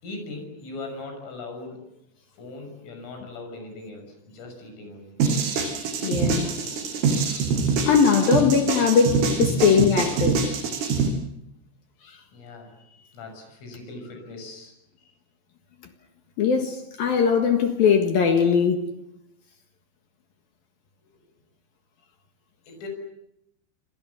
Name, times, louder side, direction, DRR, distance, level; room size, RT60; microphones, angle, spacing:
voice 1, 0.0-1.8 2.3-5.2 12.3-15.1 21.0-21.2 22.7-22.9, left 2 dB, 75° left, 9.1 m, -40 dB
sound 1, 5.2-11.1, right 5 dB, 80° right, 7.3 m, -24 dB
voice 2, 6.0-6.8 7.3-7.4 7.9-10.5 16.4-18.8, left 6 dB, 60° left, 2.8 m, -20 dB
29.5 x 26.5 x 7.2 m
omnidirectional pair, 5.8 m